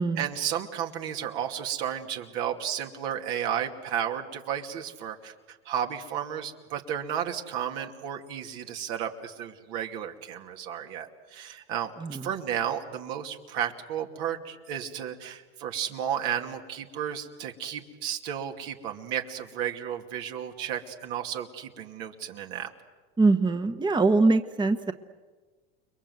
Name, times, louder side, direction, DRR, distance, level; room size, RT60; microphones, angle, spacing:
voice 1, 0.2-22.7, right 9 dB, 70° right, 3 dB, 2.8 m, -33 dB
voice 2, 23.2-24.9, right 3 dB, 15° right, 8 dB, 1.1 m, -23 dB
30.0 x 22.0 x 8.0 m, 1.4 s
supercardioid pair, 100°, 31 cm